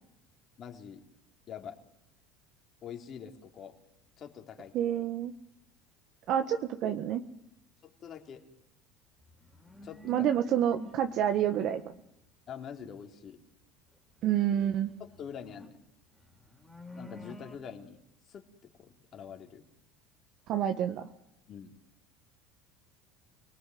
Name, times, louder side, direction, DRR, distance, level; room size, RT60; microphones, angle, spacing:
voice 1, 0.6-1.0 1.5-1.8 2.8-3.7 4.2-4.7 7.8-8.4 9.8-10.3 12.5-13.4 15.0-15.8 16.9-18.0 18.3-18.4 18.8-19.6 21.5-21.8, left 8 dB, 35° left, 3 dB, 3.7 m, -45 dB
voice 2, 4.7-5.3 6.3-7.2 10.0-11.8 14.2-14.9 20.5-21.1, right 10 dB, 50° right, 6 dB, 1.6 m, -28 dB
sound 1, 9.3-11.0 11.3-11.9 14.4-15.7 16.1-17.6, left 1 dB, 5° right, 4.1 m, -49 dB
28.5 x 20.0 x 9.5 m, 0.83 s
supercardioid pair, 130°, 0 cm